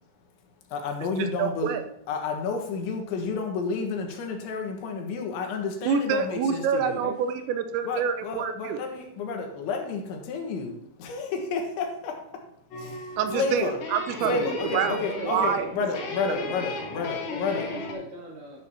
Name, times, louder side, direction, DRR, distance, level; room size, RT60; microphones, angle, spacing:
voice 1, 0.7-1.8 2.1-7.0 7.9-12.4 12.8-13.8 14.3-17.7, left 4 dB, 85° left, 3 dB, 3.8 m, -31 dB
voice 2, 1.4-1.8 5.9-8.8 13.2-14.4 14.7-15.0 15.2-15.7, right 7 dB, 90° right, 8 dB, 3.1 m, -26 dB
sound 1, 12.7-17.9, left 2 dB, 60° left, 3.3 m, -36 dB
voice 3, 14.2-15.7 16.3-18.7, equal, 50° right, -3 dB, 3.8 m, -38 dB
12.0 x 11.5 x 2.9 m, 0.73 s
omnidirectional pair, 5.2 m